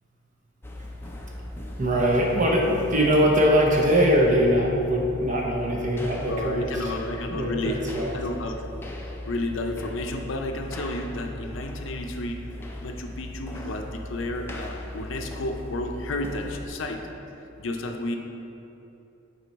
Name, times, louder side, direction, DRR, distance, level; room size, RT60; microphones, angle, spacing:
sound 1, 0.6-16.7, left 1 dB, 10° left, 0.5 m, -38 dB
voice 1, 1.8-6.9 7.3-8.1, equal, 35° right, -1 dB, 0.8 m, -22 dB
voice 2, 6.3-7.8 8.1-8.7 9.3-12.5 12.8-17.0 17.6-18.2, left 2 dB, 65° left, 4 dB, 0.5 m, -31 dB
6.8 x 4.3 x 4.6 m, 2.8 s
head